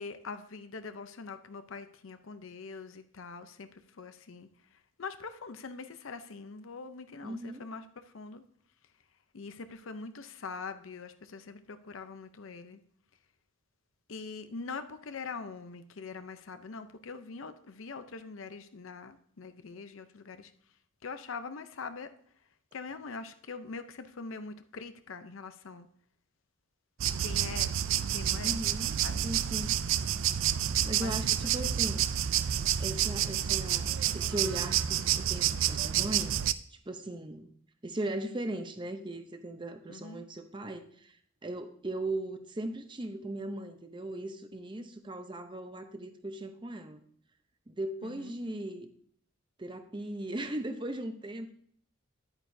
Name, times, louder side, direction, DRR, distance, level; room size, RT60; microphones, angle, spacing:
voice 1, 0.0-8.4 9.3-12.8 14.1-20.5 21.0-22.1 22.7-25.9 27.2-28.6 29.0-29.3 31.0-31.4 31.6-31.7 39.9-40.3 48.0-48.4, left 4 dB, 70° left, 0.6 m, -43 dB
voice 2, 7.2-7.7 28.4-29.8 30.9-32.0 32.8-36.4 36.9-37.5 37.8-41.2 41.4-47.0 47.7-48.9 49.6-51.5, right 1 dB, 20° right, 0.6 m, -38 dB
sound 1, 27.0-36.5, right 10 dB, 65° right, 0.4 m, -29 dB
10.5 x 8.8 x 2.7 m
head